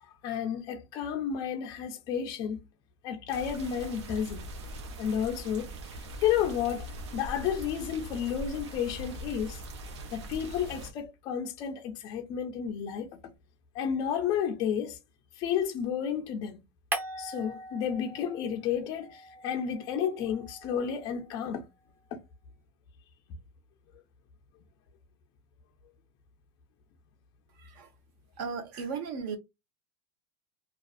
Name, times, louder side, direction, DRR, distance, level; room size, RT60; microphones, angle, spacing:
voice 1, 0.2-2.6 3.0-4.5 5.0-9.6 10.1-13.2 13.7-15.0 15.3-16.6 17.2-21.6 22.1-22.2, left 8 dB, 30° left, 0.3 m, -32 dB
sound 1, 3.3-10.9, right 1 dB, 90° right, 0.8 m, -42 dB
sound 2, 16.9-18.6 18.9-21.3, right 1 dB, 15° right, 0.7 m, -41 dB
voice 2, 27.6-27.9 28.4-29.4, right 5 dB, 45° right, 0.6 m, -36 dB
2.4 x 2.3 x 2.4 m
supercardioid pair, 160°, 14 cm